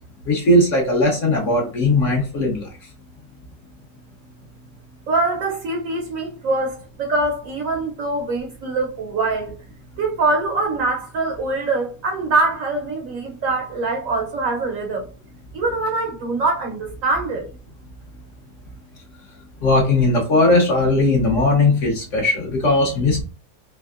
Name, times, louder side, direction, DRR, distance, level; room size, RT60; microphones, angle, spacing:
voice 1, 0.3-2.7 19.6-23.2, left 2 dB, 50° left, 1.1 m, -18 dB
voice 2, 5.1-9.6 10.0-15.1 15.5-17.5, right 3 dB, 65° right, 0.9 m, -23 dB
3.5 x 3.2 x 2.4 m
omnidirectional pair, 1.8 m